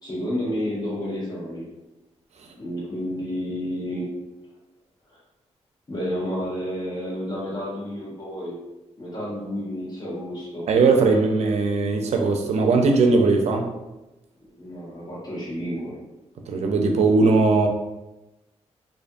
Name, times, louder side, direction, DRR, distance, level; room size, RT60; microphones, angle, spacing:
voice 1, 0.0-1.6 2.6-4.1 5.1-5.2 5.9-8.5 9.0-10.7 14.6-16.0, equal, 35° left, -6 dB, 1.2 m, -30 dB
voice 2, 10.7-13.7 16.5-17.7, right 3 dB, 65° right, 3 dB, 0.4 m, -19 dB
2.5 x 2.5 x 2.3 m, 0.99 s
cardioid pair, 80°, 12 cm